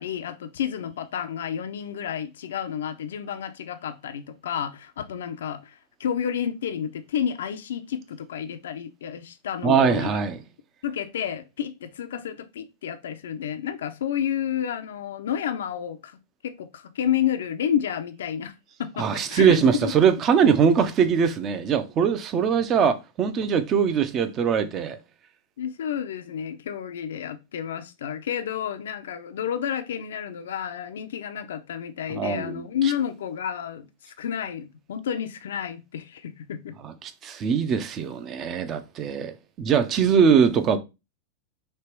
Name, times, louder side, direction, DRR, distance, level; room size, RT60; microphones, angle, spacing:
voice 1, 0.0-10.2 10.8-16.2 16.4-18.5 18.8-19.9 25.6-36.7, left 9 dB, 90° left, 0.5 m, -30 dB
voice 2, 9.6-10.4 19.0-25.0 32.1-32.9 36.8-39.3 39.6-40.8, right 7 dB, 30° right, 0.6 m, -22 dB
3.3 x 2.9 x 4.5 m
supercardioid pair, 135°, 0 cm